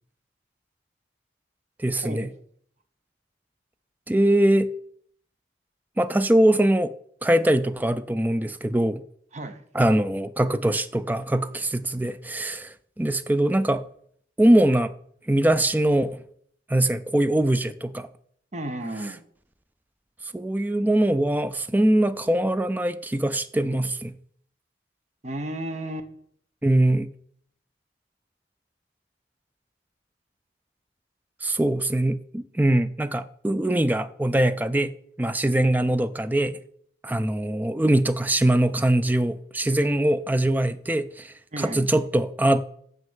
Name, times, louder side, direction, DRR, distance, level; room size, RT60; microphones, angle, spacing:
voice 1, 1.8-2.3 4.1-4.7 6.0-6.9 7.2-9.0 9.7-13.8 14.4-14.9 15.3-16.2 16.7-18.1 20.3-24.1 26.6-27.1 31.4-34.9 35.2-36.6 37.0-42.6, right 1 dB, 10° right, 0.3 m, -22 dB
voice 2, 9.3-9.6 18.5-19.2 25.2-26.1 41.5-41.9, right 1 dB, 40° right, 0.9 m, -33 dB
7.3 x 6.4 x 7.1 m
head